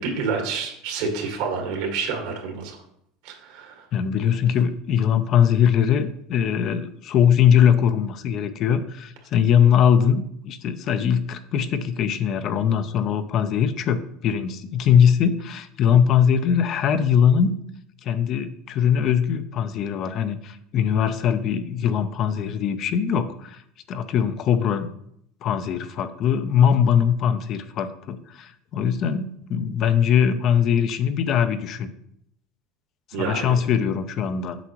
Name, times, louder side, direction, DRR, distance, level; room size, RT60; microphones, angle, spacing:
voice 1, 0.0-2.8 3.2-3.9 33.1-33.5, right 5 dB, 75° right, 2 dB, 1.8 m, -28 dB
voice 2, 3.9-17.5 18.0-23.6 23.9-24.9 25.4-31.9 33.2-34.6, left 8 dB, 45° left, 11 dB, 0.5 m, -21 dB
7.8 x 5.7 x 3.0 m, 0.71 s
cardioid pair, 140°, 0 cm